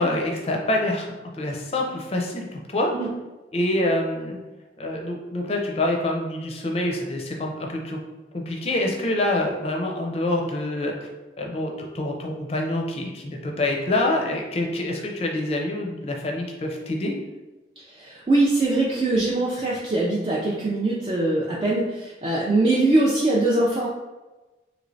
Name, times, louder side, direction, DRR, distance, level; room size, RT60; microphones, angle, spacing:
voice 1, 0.0-2.9 3.5-4.4 4.8-8.0 8.3-11.1 11.4-17.2, left 1 dB, 35° left, 1 dB, 0.5 m, -26 dB
voice 2, 17.9-23.9, right 2 dB, 30° right, -5 dB, 0.4 m, -22 dB
3.1 x 3.1 x 2.6 m, 1.1 s
head